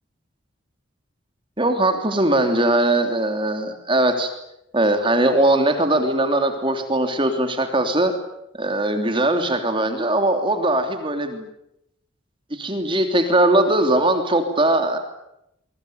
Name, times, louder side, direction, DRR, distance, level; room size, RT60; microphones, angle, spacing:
voice 1, 1.6-4.3 4.7-8.1 8.5-11.5 12.5-15.0, right 1 dB, 25° right, 6 dB, 3.2 m, -20 dB
25.5 x 23.5 x 9.5 m, 0.82 s
head